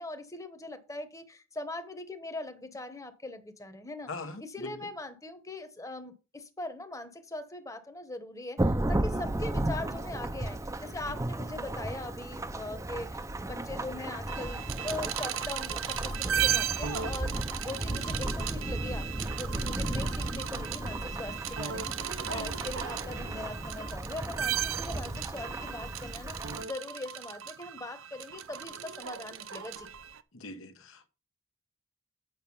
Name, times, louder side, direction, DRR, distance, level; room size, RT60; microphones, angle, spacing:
voice 1, 0.0-4.1 4.4-29.9, left 2 dB, 15° left, 1.1 m, -41 dB
voice 2, 4.1-4.9 9.1-9.2 11.1-11.2 19.6-19.8 22.2-22.6 30.3-31.1, left 2 dB, 80° left, 1.3 m, -43 dB
Thunderstorm / Rain, 8.6-26.6, right 1 dB, 15° right, 0.6 m, -34 dB
sound 1, 14.3-30.2, right 9 dB, 80° right, 0.7 m, -36 dB
8.8 x 6.0 x 5.5 m
head